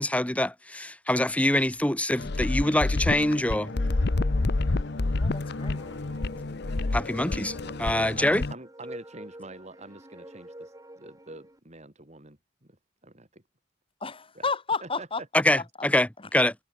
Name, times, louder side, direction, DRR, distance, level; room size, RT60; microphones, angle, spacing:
voice 1, 0.0-3.7 6.9-8.4 15.3-16.5, left 1 dB, 5° left, 1.1 m, -25 dB
sound 1, 2.1-7.4, left 4 dB, 80° left, 6.0 m, -56 dB
sound 2, 2.2-8.5, left 2 dB, 60° left, 0.9 m, -28 dB
sound 3, 3.4-11.6, right 1 dB, 20° right, 5.3 m, -48 dB
voice 2, 5.2-5.8 14.0-15.6, left 4 dB, 30° left, 3.1 m, -32 dB
voice 3, 8.0-12.4 13.0-13.4 14.3-14.4 14.8-15.1, right 2 dB, 40° right, 4.7 m, -45 dB
head